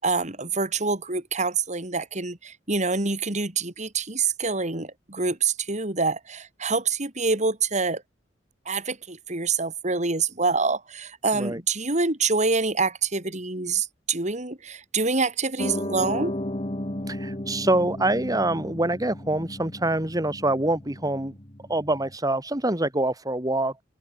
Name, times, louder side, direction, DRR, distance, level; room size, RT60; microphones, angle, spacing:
voice 1, 0.0-8.0 8.7-16.3, right 4 dB, 40° right, 4.3 m, -26 dB
Piano, 15.6-22.1, left 1 dB, 30° left, 2.4 m, -34 dB
voice 2, 17.1-21.3 21.7-23.7, right 2 dB, 20° right, 3.5 m, -25 dB
open air
head